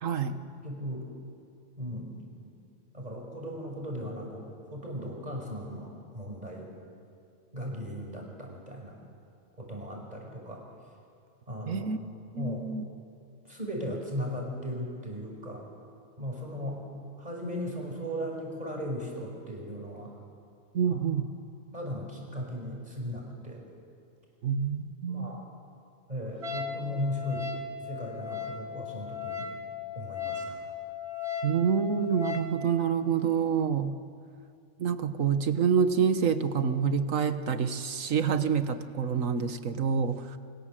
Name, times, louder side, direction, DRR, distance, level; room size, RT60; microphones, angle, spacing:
voice 1, 0.0-0.4 11.7-12.0 12.3-12.8 20.7-21.3 24.4-25.4 31.4-34.0 34.8-40.4, right 6 dB, 90° right, 10 dB, 1.6 m, -27 dB
voice 2, 0.6-1.0 1.8-2.5 2.9-6.7 7.5-9.0 9.6-10.6 11.5-11.9 12.3-12.6 13.4-15.7 16.2-16.8 17.2-20.1 20.9-21.0 21.7-23.6 25.1-25.5 26.1-27.5 27.8-29.5 29.9-30.6, equal, 30° right, 0 dB, 5.7 m, -37 dB
Wind instrument woodwind instrument, 26.4-32.6, left 6 dB, 55° right, 2.3 m, -37 dB
29.5 x 24.0 x 7.6 m, 2.4 s
omnidirectional pair, 1.3 m